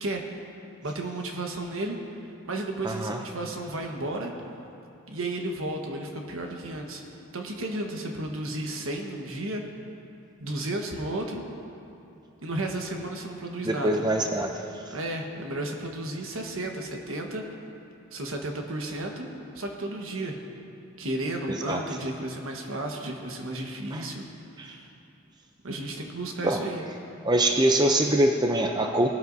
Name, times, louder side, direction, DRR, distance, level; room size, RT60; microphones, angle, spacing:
voice 1, 0.8-2.0 2.4-4.3 5.1-7.0 7.3-9.6 10.4-11.4 12.4-14.1 14.9-17.4 18.1-19.3 19.5-20.4 21.0-24.3 24.6-24.9 25.6-26.8, right 1 dB, 70° right, 2 dB, 1.3 m, -33 dB
voice 2, 2.8-3.2 13.6-14.9 21.5-21.8 23.9-24.1 24.6-24.8 26.4-26.6 27.2-29.1, right 1 dB, 20° right, 3 dB, 0.4 m, -24 dB
19.0 x 12.5 x 2.7 m, 2.8 s
head